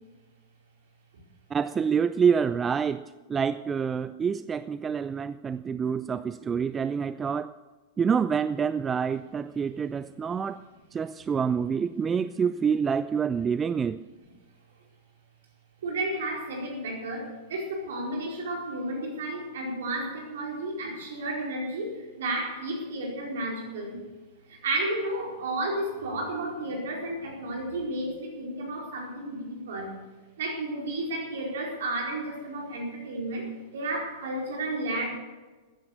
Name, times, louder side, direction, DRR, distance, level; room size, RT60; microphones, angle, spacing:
voice 1, 1.5-3.0 3.3-7.5 8.0-10.6 10.9-14.0, right 6 dB, 20° right, 14 dB, 0.4 m, -27 dB
voice 2, 15.8-24.1 24.5-29.9 30.4-35.1, right 1 dB, 65° right, 0 dB, 4.6 m, -32 dB
14.5 x 10.0 x 6.7 m, 1.3 s
figure-of-eight pair, 95°, 0 cm